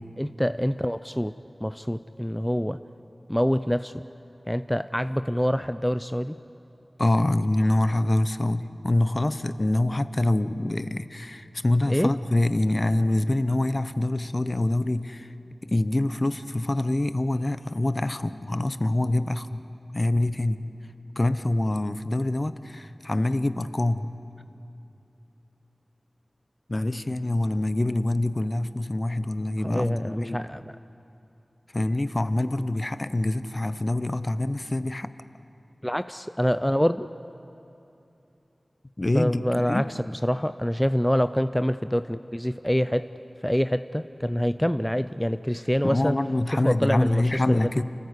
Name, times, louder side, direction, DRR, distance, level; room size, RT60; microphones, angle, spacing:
voice 1, 0.2-1.3 1.6-2.8 3.3-4.0 4.5-6.4 11.9-12.1 29.6-30.6 35.8-37.1 39.1-39.8 40.2-43.1 43.4-46.2 46.6-47.2 47.5-47.8, equal, 5° left, 11 dB, 0.4 m, -25 dB
voice 2, 7.0-15.3 15.6-19.6 19.9-20.6 21.2-24.2 26.7-30.4 31.7-35.1 39.0-39.9 45.8-47.8, left 1 dB, 35° left, 12 dB, 0.7 m, -25 dB
30.0 x 14.5 x 8.2 m, 2.8 s
wide cardioid pair, 75°, 0 cm